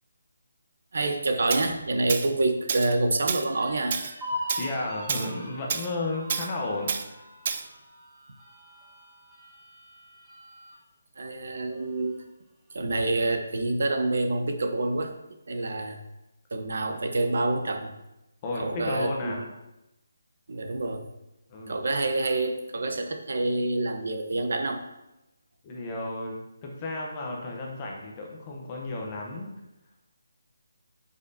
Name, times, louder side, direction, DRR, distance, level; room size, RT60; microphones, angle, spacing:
voice 1, 0.9-4.0 11.2-12.2 12.7-15.1 15.5-16.0 16.5-17.9 18.6-19.4 20.5-21.1 21.7-24.8, right 2 dB, 50° right, 6 dB, 0.9 m, -27 dB
Tools, 1.5-1.7 2.1-2.3 2.7-2.9 3.3-3.5 3.9-4.1 4.5-4.7 5.1-5.3 5.7-5.9 6.3-6.5 6.9-7.0 7.4-7.6, right 6 dB, 25° right, 0.4 m, -29 dB
sound 1, 3.1-10.8 11.2-11.3 11.7-12.4, left 1 dB, 5° right, 1.1 m, -41 dB
voice 2, 4.6-7.3 18.4-19.4 21.5-21.8 25.6-29.5, left 2 dB, 15° left, -1 dB, 0.8 m, -33 dB
10.5 x 5.4 x 2.7 m, 0.94 s
hypercardioid pair, 180°, 0 cm